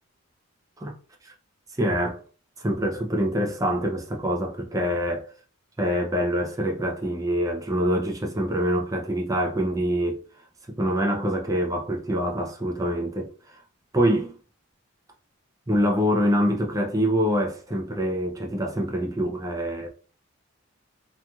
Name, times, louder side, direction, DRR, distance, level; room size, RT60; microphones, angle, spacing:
voice 1, 1.8-2.2 2.6-5.3 5.8-10.2 10.7-13.6 13.9-14.3 15.7-19.9, equal, 15° right, 0.5 m, -25 dB
2.9 x 2.5 x 2.3 m
head